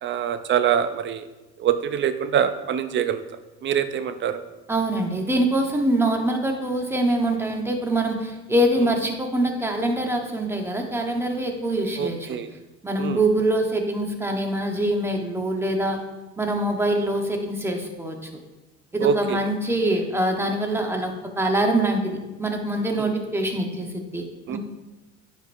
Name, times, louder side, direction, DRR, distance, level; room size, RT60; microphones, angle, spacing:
voice 1, 0.0-1.2 1.6-3.2 3.6-4.4 12.0-12.5 13.0-13.2 19.0-19.4 22.9-23.1 24.5-24.6, right 9 dB, 35° right, 11 dB, 0.5 m, -24 dB
voice 2, 4.7-12.3 12.8-16.0 16.4-18.2 18.9-24.6, right 1 dB, 5° right, 3 dB, 1.0 m, -24 dB
9.7 x 5.1 x 2.6 m, 1.1 s
supercardioid pair, 100°, 33 cm